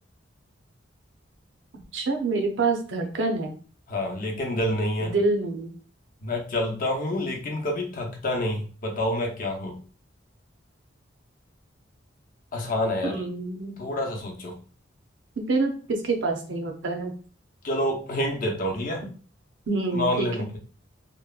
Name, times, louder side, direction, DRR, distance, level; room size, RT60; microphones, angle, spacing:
voice 1, 1.9-3.6 5.0-5.7 13.0-13.7 15.4-17.1 19.7-20.3, right 3 dB, 75° right, 3 dB, 0.6 m, -26 dB
voice 2, 3.9-5.2 6.2-9.8 12.5-13.3 13.8-14.6 17.6-19.0 19.9-20.6, left 1 dB, 50° left, 1 dB, 0.6 m, -28 dB
2.9 x 2.1 x 2.3 m, 0.39 s
head